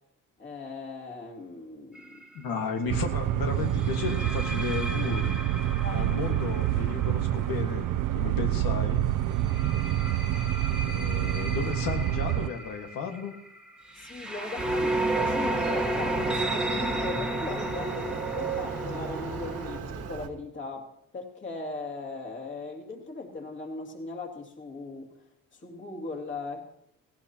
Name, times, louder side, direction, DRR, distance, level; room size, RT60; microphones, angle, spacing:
voice 1, 0.4-2.3 5.8-6.1 9.6-9.8 13.9-25.1 25.5-26.7, left 3 dB, 35° left, 1 dB, 2.4 m, -39 dB
sound 1, 1.9-2.2 3.7-8.5 9.3-19.8, right 1 dB, 5° right, 1.3 m, -33 dB
voice 2, 2.3-5.4 5.9-7.9 8.1-9.0 10.8-13.3, left 5 dB, 90° left, 4 dB, 1.6 m, -33 dB
sound 2, 2.9-12.5, right 13 dB, 70° right, 0.6 m, -27 dB
Motorcycle, 14.6-20.3, right 5 dB, 45° right, 1.6 m, -36 dB
18.0 x 17.0 x 2.9 m, 0.76 s
cardioid pair, 150°, 34 cm